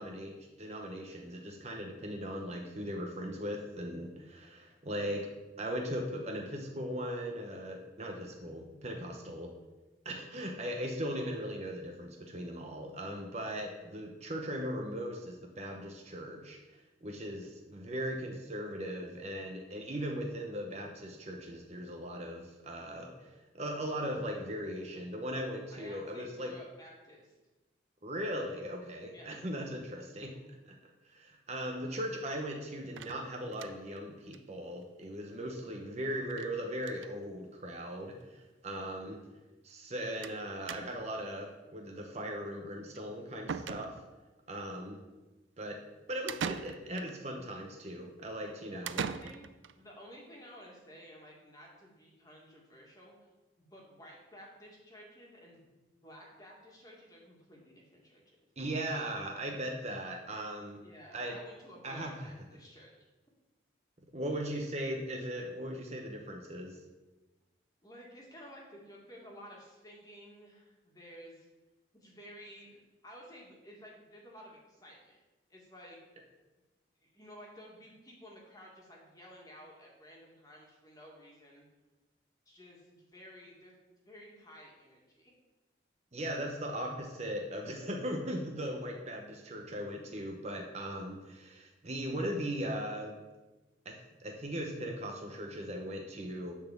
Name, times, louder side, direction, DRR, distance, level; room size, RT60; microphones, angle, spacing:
voice 1, 0.0-5.3 5.6-9.5 10.0-26.5 28.0-30.3 30.7-30.8 31.0-39.2 39.6-44.0 44.5-45.0 45.6-45.8 46.1-49.0 58.6-60.8 61.1-61.4 61.8-62.3 64.1-66.8 86.1-93.1 93.8-96.5, equal, 35° right, 1 dB, 0.9 m, -38 dB
voice 2, 25.7-27.4 29.1-29.4 48.7-49.5 49.7-53.2 53.6-55.7 56.0-58.2 60.8-62.9 67.8-71.5 71.9-75.2 75.5-76.0 77.0-81.7 82.5-83.7 84.1-85.3, equal, 20° left, -2 dB, 1.9 m, -53 dB
sound 1, 33.0-34.0 34.3-34.4 34.7-34.8 35.0-35.1 36.3-36.5 36.8-37.2 38.0-38.1 38.4-38.5 40.2-40.4 40.7-41.2 43.0-43.1 43.5-44.3 46.3-47.2 48.9-49.7, right 6 dB, 80° right, 0.4 m, -40 dB
10.0 x 4.2 x 7.1 m, 1.1 s
head